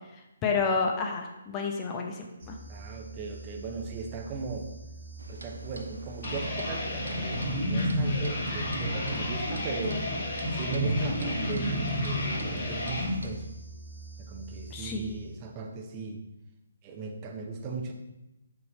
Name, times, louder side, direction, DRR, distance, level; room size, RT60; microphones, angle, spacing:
voice 1, 0.4-2.6 11.5-11.6 14.7-15.1, left 4 dB, 20° left, 2 dB, 0.7 m, -30 dB
sound 1, 2.4-15.5, right 3 dB, 45° right, 1.4 m, -45 dB
voice 2, 2.7-4.7 5.3-10.1 10.5-13.5 14.2-16.2 16.8-17.9, right 4 dB, 25° right, 2 dB, 0.8 m, -38 dB
Clock, 5.2-13.3, equal, 75° right, 0.7 m, -46 dB
sound 2, 6.2-13.1, left 1 dB, 40° left, 1.6 m, -30 dB
5.7 x 4.6 x 4.1 m, 0.95 s
figure-of-eight pair, 140°, 0 cm